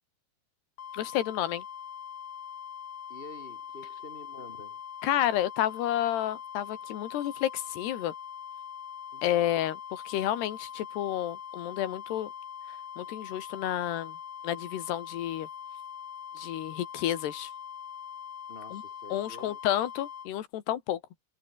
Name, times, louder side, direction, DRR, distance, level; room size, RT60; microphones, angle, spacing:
sound 1, 0.8-20.3, left 8 dB, 50° left, 2.6 m, -42 dB
voice 1, 0.9-1.6 5.0-8.1 9.2-12.3 13.0-14.2 14.4-15.5 16.4-17.5 18.7-18.8 19.1-21.0, left 12 dB, 80° left, 3.9 m, -30 dB
voice 2, 3.1-4.8 9.1-9.6 18.5-19.6, left 2 dB, 10° left, 6.0 m, -48 dB
omnidirectional pair, 4.7 m